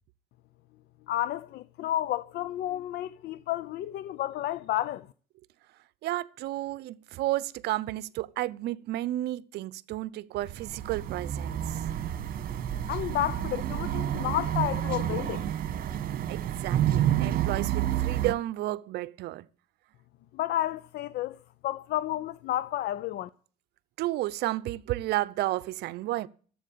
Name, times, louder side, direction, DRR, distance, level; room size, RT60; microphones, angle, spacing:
voice 1, 1.1-5.1 12.9-15.5 20.3-21.4 21.6-23.3, left 13 dB, 75° left, 0.6 m, -31 dB
voice 2, 6.0-11.6 16.3-19.5 24.0-26.3, right 16 dB, 80° right, 0.7 m, -32 dB
sound 1, 10.4-18.3, right 11 dB, 60° right, 1.6 m, -29 dB
14.0 x 7.9 x 8.5 m
cardioid pair, 110°, 17 cm